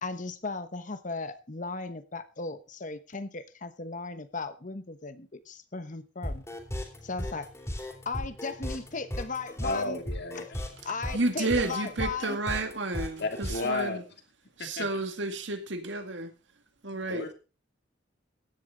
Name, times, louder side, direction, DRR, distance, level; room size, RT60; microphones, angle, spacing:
voice 1, 0.0-6.4 7.0-7.5 8.0-10.0 10.3-10.5 10.8-12.4, left 4 dB, 45° left, 1.1 m, -36 dB
sound 1, 6.2-13.8, left 1 dB, 15° left, 3.4 m, -36 dB
voice 2, 9.6-10.6 13.2-14.0 14.6-14.9 16.9-17.3, left 2 dB, 60° left, 2.7 m, -33 dB
voice 3, 11.1-14.0 14.6-16.3 16.8-17.3, right 2 dB, 70° right, 2.2 m, -31 dB
16.0 x 10.5 x 3.9 m
head